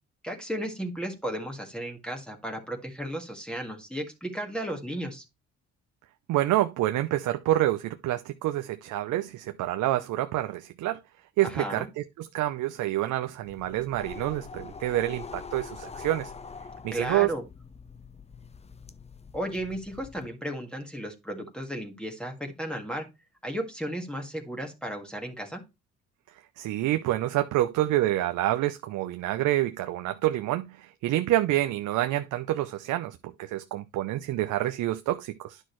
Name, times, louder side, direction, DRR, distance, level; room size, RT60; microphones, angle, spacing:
voice 1, 0.2-5.2 11.4-11.9 16.9-17.4 19.3-23.1 23.4-25.6, right 1 dB, 5° left, 1.8 m, -34 dB
voice 2, 6.3-11.0 11.4-16.3 16.8-17.3 26.6-35.6, right 14 dB, 80° right, 0.6 m, -27 dB
sound 1, 13.4-20.3, left 5 dB, 20° left, 0.6 m, -44 dB
9.7 x 6.2 x 3.1 m
cardioid pair, 90°, 30 cm